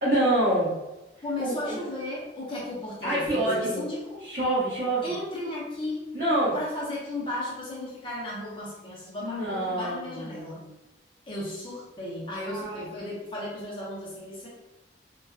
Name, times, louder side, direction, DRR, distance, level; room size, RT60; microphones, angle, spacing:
voice 1, 0.0-0.7 1.4-1.8 3.0-3.8 4.2-5.1 6.1-6.6 9.2-10.7 12.5-13.1, right 1 dB, 45° right, -11 dB, 0.9 m, -27 dB
voice 2, 1.2-4.2 5.0-6.1 6.5-10.6 11.3-14.5, left 1 dB, 25° left, -5 dB, 0.7 m, -35 dB
2.7 x 2.3 x 2.3 m, 1.0 s
head